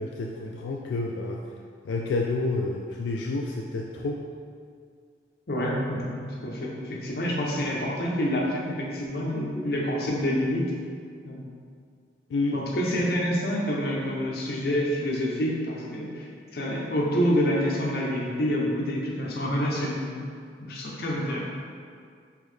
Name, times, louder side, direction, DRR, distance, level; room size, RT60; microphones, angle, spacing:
voice 1, 0.0-1.4 1.8-4.2 12.3-12.6, left 3 dB, 90° left, -1 dB, 0.3 m, -29 dB
voice 2, 5.5-10.7 11.2-11.4 12.5-16.3 16.5-20.2 20.6-21.4, equal, 55° left, -3 dB, 0.7 m, -27 dB
3.8 x 3.1 x 3.2 m, 2.2 s
head